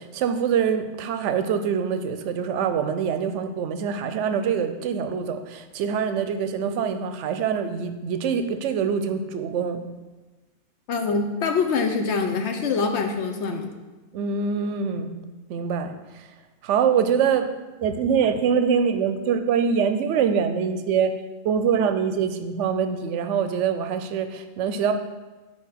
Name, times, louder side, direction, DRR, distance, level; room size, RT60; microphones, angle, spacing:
voice 1, 0.0-9.8 14.1-15.1 15.5-16.3 16.6-17.5 17.8-21.1 21.4-24.9, right 7 dB, 70° right, 8 dB, 0.8 m, -24 dB
voice 2, 10.9-13.7, left 4 dB, 65° left, 5 dB, 0.8 m, -24 dB
4.6 x 4.6 x 5.6 m, 1.2 s
omnidirectional pair, 1.3 m